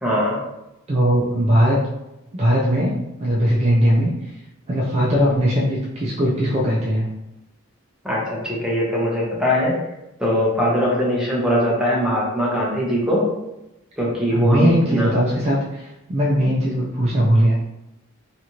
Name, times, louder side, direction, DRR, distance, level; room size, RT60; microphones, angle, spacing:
voice 1, 0.0-0.4 8.0-9.7 10.2-13.3 14.0-15.1, equal, 5° right, -5 dB, 0.7 m, -21 dB
voice 2, 0.9-1.8 2.3-4.1 4.7-7.1 14.3-17.7, equal, 30° right, -4 dB, 0.4 m, -19 dB
2.8 x 2.4 x 2.9 m, 0.93 s
head